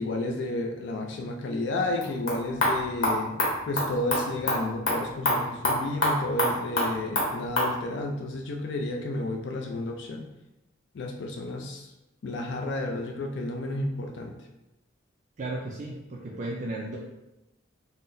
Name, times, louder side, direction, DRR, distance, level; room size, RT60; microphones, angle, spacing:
voice 1, 0.0-3.4 3.7-10.3 10.9-11.9 12.2-14.4, left 2 dB, 60° left, 2 dB, 0.3 m, -31 dB
sound 1, 1.9-7.7, left 1 dB, 85° left, 1.0 m, -28 dB
voice 2, 15.4-17.0, right 2 dB, 40° right, -3 dB, 0.3 m, -34 dB
3.7 x 2.0 x 2.6 m, 0.95 s
head